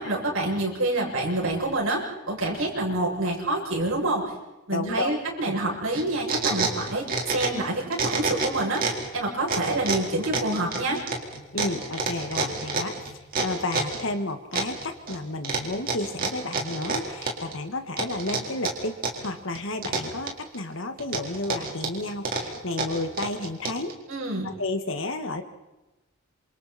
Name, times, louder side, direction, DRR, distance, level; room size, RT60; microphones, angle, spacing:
voice 1, 0.0-4.3 4.7-11.0 24.1-24.5, right 2 dB, 70° right, -3 dB, 7.6 m, -27 dB
voice 2, 4.7-5.2 5.5-5.6 11.5-24.0 24.4-25.4, left 2 dB, 60° left, 7 dB, 1.9 m, -32 dB
sound 1, 5.9-7.6 7.9-9.1 9.5-14.0 14.5-15.2 15.4-17.5 18.0-19.3 19.5-20.6 21.0-23.9, right 4 dB, 40° right, 4.3 m, -28 dB
28.0 x 27.5 x 4.4 m, 1.1 s
head